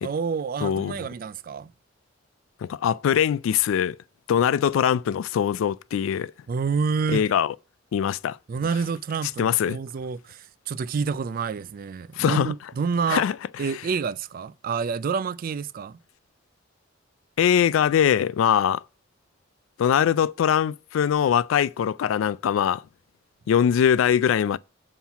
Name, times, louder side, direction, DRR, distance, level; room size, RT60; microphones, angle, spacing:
voice 1, 0.0-1.7 6.5-7.2 8.5-13.2 13.6-16.0, right 5 dB, 45° right, 0.3 m, -28 dB
voice 2, 0.6-1.0 2.6-4.0 4.3-6.3 7.1-7.5 7.9-8.4 9.4-9.8 12.1-12.5 13.1-13.4 17.4-18.8 19.8-22.8 23.5-24.6, left 8 dB, 85° left, 0.3 m, -22 dB
5.6 x 4.4 x 5.6 m
head